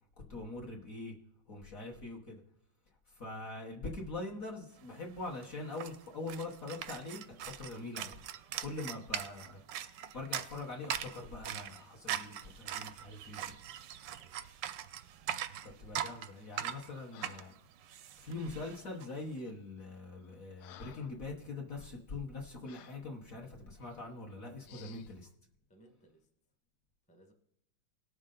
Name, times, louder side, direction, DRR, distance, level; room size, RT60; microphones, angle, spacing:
voice 1, 0.3-1.1 1.5-2.4 3.1-8.2 8.6-9.6 10.1-13.5 15.6-17.5 18.2-25.2, left 2 dB, 45° left, -1 dB, 1.3 m, -43 dB
sound 1, 4.9-5.0 5.2-19.1, right 10 dB, 75° right, 1.0 m, -41 dB
Breathing, 16.5-16.8 17.1-17.6 18.7-18.9 19.6-19.8 20.2-21.2 21.7-21.9 22.6-23.1 23.8-24.0 24.6-25.1, left 12 dB, 80° left, 1.4 m, -57 dB
voice 2, 24.7-25.0 25.7-26.3 27.1-27.3, right 2 dB, 5° left, 2 dB, 0.8 m, -62 dB
18.5 x 6.5 x 3.8 m, 0.78 s
omnidirectional pair, 2.4 m